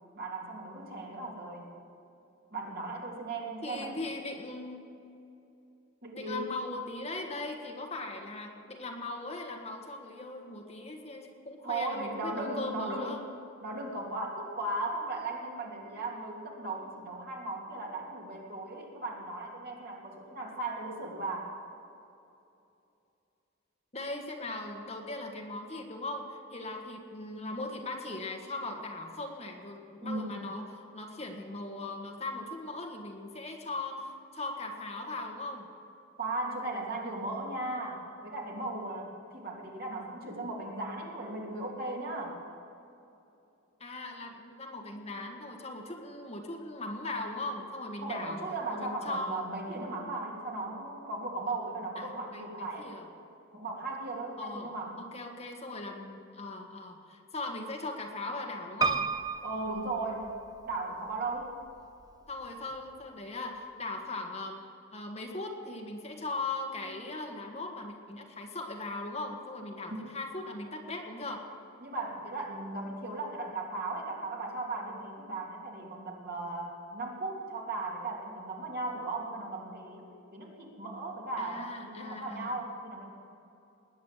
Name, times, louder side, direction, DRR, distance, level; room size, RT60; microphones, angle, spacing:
voice 1, 0.1-1.8 2.5-4.0 6.0-6.5 11.6-13.2 13.6-21.5 30.0-30.5 36.2-42.4 48.0-52.9 53.5-55.1 59.4-60.4 60.6-61.6 69.9-70.0 71.8-83.1, right 2 dB, 50° right, -2 dB, 2.9 m, -37 dB
voice 2, 3.6-4.9 6.1-13.2 23.9-35.7 43.8-48.4 48.7-49.4 52.0-53.1 54.4-59.1 62.3-64.6 64.9-71.5 81.4-82.5, left 2 dB, 30° left, 2 dB, 1.6 m, -39 dB
Piano, 58.8-60.8 61.4-62.1 62.4-62.5 62.7-62.8, right 4 dB, 20° right, 0.5 m, -33 dB
20.0 x 9.5 x 7.4 m, 2.7 s
head